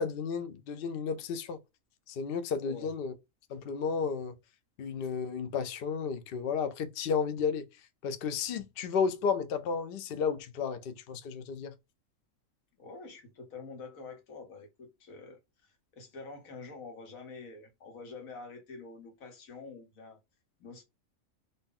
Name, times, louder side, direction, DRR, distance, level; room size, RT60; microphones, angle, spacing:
voice 1, 0.0-1.6 2.1-3.1 3.5-4.3 4.8-7.7 8.0-11.7, left 6 dB, 60° left, 0.6 m, -32 dB
voice 2, 12.8-20.2 20.6-20.8, left 4 dB, 80° left, 1.4 m, -47 dB
2.7 x 2.6 x 3.6 m
omnidirectional pair, 1.4 m